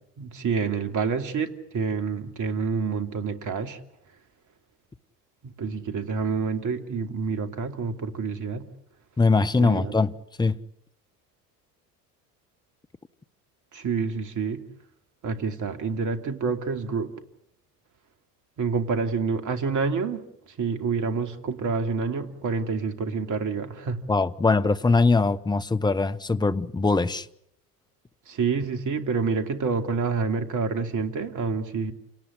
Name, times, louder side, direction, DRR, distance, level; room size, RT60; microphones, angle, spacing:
voice 1, 0.2-3.8 5.4-8.7 9.6-9.9 13.7-14.6 15.2-17.1 18.6-20.3 20.6-24.0 28.3-31.9, right 5 dB, 40° right, 2.8 m, -28 dB
voice 2, 9.2-10.6 24.1-27.3, left 3 dB, 10° left, 0.9 m, -22 dB
28.5 x 19.0 x 8.1 m
figure-of-eight pair, 70°, 46 cm